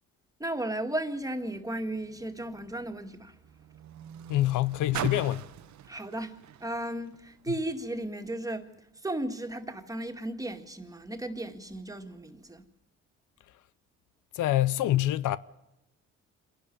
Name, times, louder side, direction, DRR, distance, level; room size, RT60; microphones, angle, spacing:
voice 1, 0.4-3.3 5.9-8.7 9.0-12.6, right 1 dB, 10° right, 2.0 m, -35 dB
Car, 1.3-7.9 8.7-8.8, right 10 dB, 70° right, 1.1 m, -43 dB
voice 2, 4.3-5.4 14.4-15.4, left 14 dB, 80° left, 0.7 m, -25 dB
27.0 x 11.5 x 9.9 m
cardioid pair, 90°, 30 cm